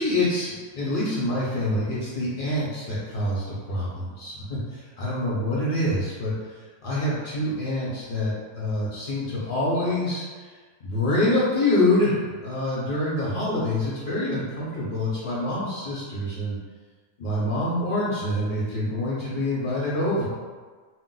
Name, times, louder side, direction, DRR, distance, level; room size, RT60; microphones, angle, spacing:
voice 1, 0.0-6.3 6.8-10.5 10.8-12.1 12.4-16.6 17.2-20.3, left 1 dB, 50° left, -7 dB, 0.6 m, -26 dB
2.4 x 2.2 x 3.8 m, 1.5 s
omnidirectional pair, 1.6 m